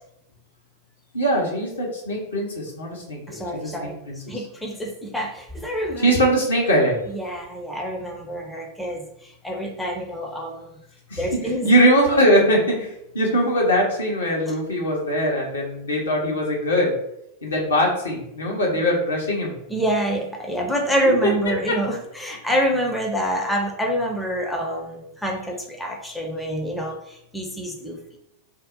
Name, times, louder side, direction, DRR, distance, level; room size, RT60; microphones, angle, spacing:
voice 1, 1.1-4.2 6.0-7.0 11.1-16.9 17.4-19.5, equal, 70° left, -2 dB, 1.0 m, -21 dB
voice 2, 3.3-4.0 4.3-6.1 7.1-10.7 11.2-11.7 14.5-14.6 19.7-28.0, right 1 dB, 5° left, 0 dB, 0.6 m, -26 dB
2.7 x 2.0 x 3.8 m, 0.81 s
figure-of-eight pair, 90°, 0 cm